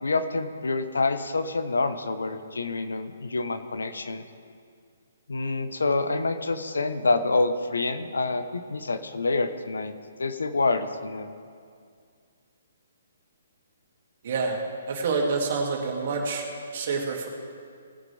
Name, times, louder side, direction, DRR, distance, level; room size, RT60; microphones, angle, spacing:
voice 1, 0.0-4.3 5.3-9.9 10.2-11.3, left 3 dB, 85° left, 10 dB, 1.0 m, -27 dB
voice 2, 14.2-14.6 14.9-16.5 16.7-17.3, right 4 dB, 55° right, 0 dB, 2.5 m, -27 dB
20.0 x 9.3 x 3.4 m, 2.2 s
hypercardioid pair, 145°, 0 cm